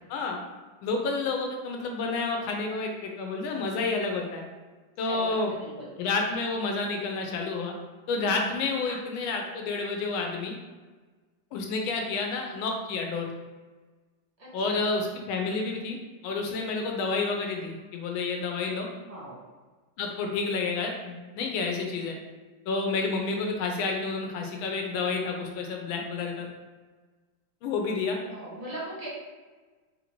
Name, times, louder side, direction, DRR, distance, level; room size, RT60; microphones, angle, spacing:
voice 1, 0.1-0.4 0.8-4.4 5.0-5.5 6.0-7.7 8.1-10.5 11.5-13.3 14.5-16.0 16.2-18.9 20.0-22.1 22.7-26.5 27.6-28.2, left 3 dB, 85° left, 2 dB, 1.4 m, -29 dB
voice 2, 5.0-5.9 8.2-8.4 8.8-9.0 14.4-14.8 19.0-19.4 28.2-29.1, right 1 dB, 30° right, -7 dB, 0.7 m, -40 dB
3.7 x 2.6 x 2.9 m, 1.3 s
omnidirectional pair, 2.1 m